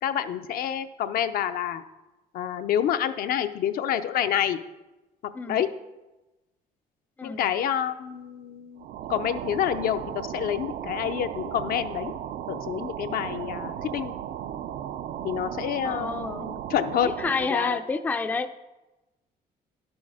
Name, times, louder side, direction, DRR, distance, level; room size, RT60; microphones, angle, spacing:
voice 1, 0.0-1.8 2.3-4.6 5.2-5.7 7.2-12.1 12.5-14.1 15.2-17.1 17.5-17.8, left 10 dB, 65° left, 9 dB, 0.6 m, -28 dB
sound 1, 8.8-17.6, right 10 dB, 70° right, 0.5 m, -36 dB
voice 2, 15.8-16.5 17.0-18.5, left 4 dB, 10° left, 9 dB, 0.4 m, -29 dB
10.5 x 6.3 x 4.8 m, 1.0 s
cardioid pair, 140°, 16 cm